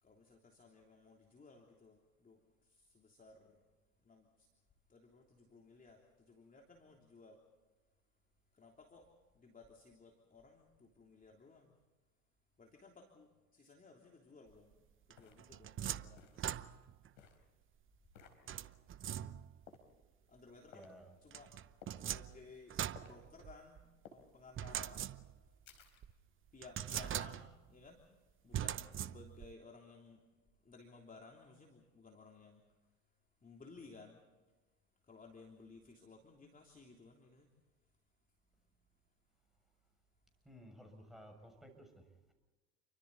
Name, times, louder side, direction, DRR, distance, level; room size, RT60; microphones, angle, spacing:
voice 1, 0.0-3.6 4.0-4.5 4.9-7.4 8.5-11.8 12.6-16.6 18.4-18.7 20.3-25.6 26.5-30.2 30.6-33.0 33.4-34.2 35.0-37.5 38.5-38.7, left 3 dB, 20° left, 1 dB, 3.3 m, -59 dB
sound 1, 14.4-14.5 15.2-15.5 16.2-16.5 17.2-17.4 18.1-18.4 19.7-19.9 20.7-20.9 21.8-22.1 23.0-23.2 24.0-24.2 25.7-26.1 26.9-27.3, left 5 dB, 75° left, 4.1 m, -58 dB
sound 2, 15.1-17.1 18.5-19.7 21.3-23.8 24.6-25.6 26.0-26.1 26.6-27.7 28.5-29.5, right 10 dB, 30° right, 0.8 m, -42 dB
voice 2, 15.8-16.3 20.7-21.1 40.4-42.3, equal, ahead, 4 dB, 6.6 m, -57 dB
29.5 x 24.5 x 4.1 m, 1.2 s
hypercardioid pair, 80°, 42 cm